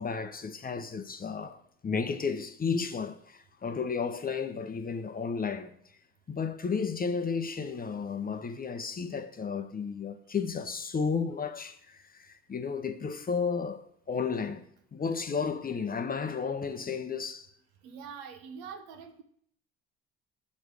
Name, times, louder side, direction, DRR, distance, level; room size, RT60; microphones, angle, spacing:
voice 1, 0.0-5.7 6.3-17.5, left 5 dB, 25° left, 0.7 m, -33 dB
voice 2, 17.8-19.2, right 6 dB, 70° right, 1.0 m, -44 dB
6.3 x 6.3 x 4.8 m
hypercardioid pair, 55°, 36 cm